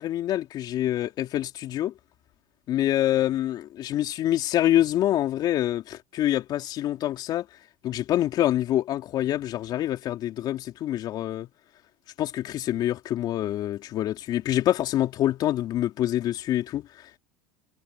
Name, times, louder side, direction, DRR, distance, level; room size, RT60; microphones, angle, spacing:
voice 1, 0.0-1.9 2.7-7.4 7.8-11.5 12.2-17.2, left 13 dB, 50° left, 3.5 m, -26 dB
hypercardioid pair, 85°, 9 cm